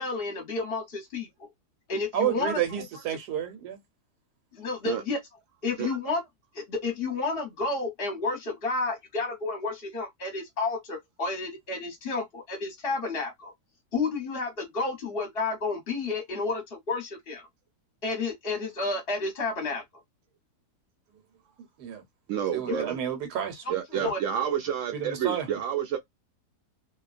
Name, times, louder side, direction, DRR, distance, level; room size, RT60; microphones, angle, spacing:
voice 1, 0.0-1.5 1.9-2.6 4.5-5.2 5.6-6.2 6.5-13.5 13.9-17.4 18.0-19.8 22.7-22.8 23.6-23.7 24.0-24.2, left 3 dB, 45° left, 1.0 m, -31 dB
voice 2, 2.1-3.8 21.8-22.0 22.5-23.6 24.0-24.1 24.9-25.5, right 9 dB, 85° right, 1.3 m, -30 dB
voice 3, 22.3-23.0 23.7-26.0, right 9 dB, 65° right, 0.8 m, -29 dB
2.7 x 2.2 x 2.4 m
omnidirectional pair, 1.7 m